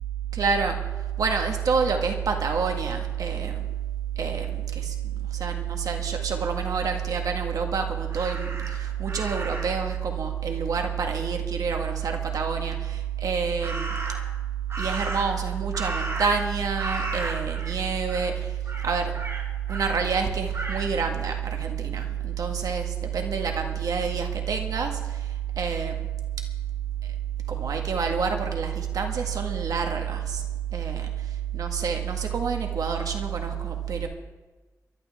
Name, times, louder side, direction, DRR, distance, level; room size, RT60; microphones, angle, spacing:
voice 1, 0.3-0.8 1.2-3.7 4.2-5.0 5.3-14.0 14.8-18.6 18.8-19.1 19.7-25.3 25.6-26.1 27.5-30.4 30.7-31.1 31.5-34.1, right 6 dB, 85° right, 4 dB, 1.8 m, -27 dB
Crow, 8.1-9.9 13.6-14.4 14.7-16.5 16.8-17.8 18.1-18.3 18.7-20.0 20.5-20.9, right 2 dB, 50° right, 2.5 m, -35 dB
23.5 x 12.0 x 3.7 m, 1.2 s
cardioid pair, 70°, 6 cm